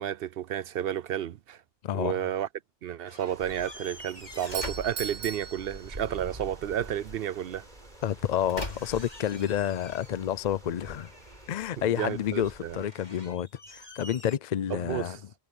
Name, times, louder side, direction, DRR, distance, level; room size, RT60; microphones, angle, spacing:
voice 1, 0.0-1.6 1.9-2.5 2.8-7.7 11.8-12.8 14.7-15.2, right 10 dB, 60° right, 0.6 m, -32 dB
voice 2, 1.8-2.2 8.0-11.1 11.5-15.2, left 10 dB, 55° left, 0.4 m, -29 dB
sound 1, 3.1-5.7 8.0-10.4 10.8-11.7 12.7-14.4, left 1 dB, 35° left, 6.8 m, -44 dB
sound 2, 3.3-12.9, right 1 dB, 35° right, 4.1 m, -48 dB
Doorbell, 4.3-6.5, right 6 dB, 80° right, 1.6 m, -39 dB
omnidirectional pair, 1.3 m